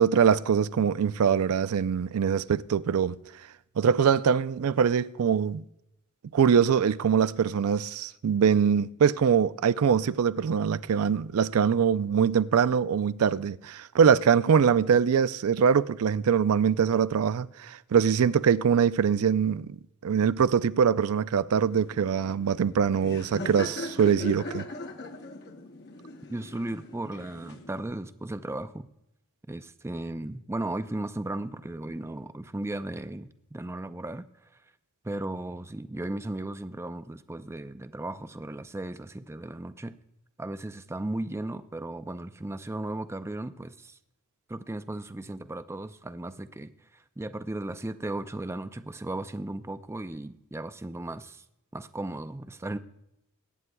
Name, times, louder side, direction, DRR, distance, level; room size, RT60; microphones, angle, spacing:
voice 1, 0.0-3.2 3.8-5.6 6.3-19.8 20.0-24.6, right 7 dB, 70° right, 0.4 m, -23 dB
Laughter, 21.6-27.8, left 1 dB, 50° left, 1.0 m, -40 dB
voice 2, 26.3-28.9 29.5-34.3 35.0-39.9 40.4-44.0 44.5-51.4 51.7-52.8, right 2 dB, 10° right, 0.4 m, -36 dB
22.0 x 9.6 x 2.2 m
head